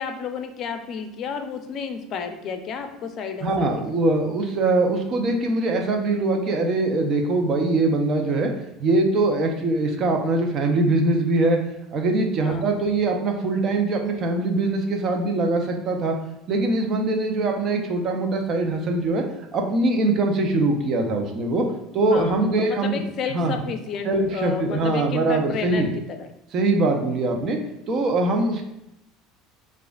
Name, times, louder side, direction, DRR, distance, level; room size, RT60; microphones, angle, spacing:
voice 1, 0.0-4.0 12.4-12.8 22.1-26.3, left 6 dB, 50° left, 7 dB, 0.5 m, -31 dB
voice 2, 3.4-8.5 8.8-11.6 11.9-16.1 16.5-19.2 19.5-21.7 21.9-23.0 23.3-23.6 24.0-25.9 26.5-27.6 27.9-28.6, right 2 dB, 45° right, 3 dB, 0.7 m, -22 dB
4.8 x 2.4 x 2.4 m, 0.85 s
supercardioid pair, 90°, 0 cm